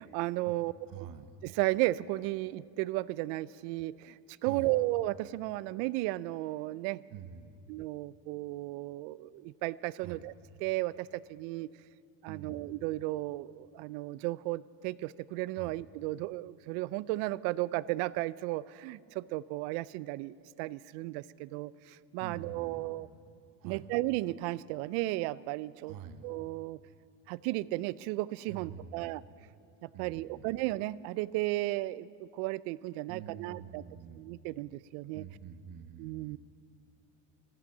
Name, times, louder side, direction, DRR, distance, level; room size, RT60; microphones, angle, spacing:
voice 1, 0.0-1.1 1.4-4.2 4.4-7.0 7.7-10.3 10.6-11.7 12.2-23.1 23.6-26.0 26.2-26.8 27.3-29.2 29.8-33.8 34.2-35.2 36.0-36.4, right 18 dB, 80° right, 20 dB, 0.5 m, -34 dB
voice 2, 0.9-1.3 4.4-4.8 7.1-7.5 10.0-10.2 12.3-12.7 15.5-15.8 22.2-22.9 23.6-23.9 25.9-26.3 28.5-29.2 29.9-30.5 33.1-34.3 35.1-36.4, right 8 dB, 50° right, 11 dB, 0.9 m, -46 dB
14.5 x 12.5 x 7.2 m, 2.4 s
cardioid pair, 135°, 45 cm